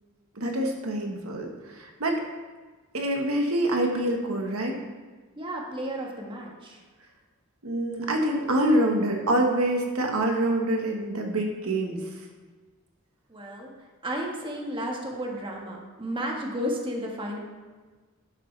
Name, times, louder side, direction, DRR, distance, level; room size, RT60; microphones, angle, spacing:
voice 1, 0.3-2.2 2.9-4.8 7.6-12.0, right 1 dB, 80° right, 2 dB, 1.3 m, -26 dB
voice 2, 5.3-6.8 13.3-13.7 14.0-17.4, equal, 25° right, -1 dB, 1.4 m, -33 dB
12.0 x 7.9 x 3.3 m, 1.4 s
head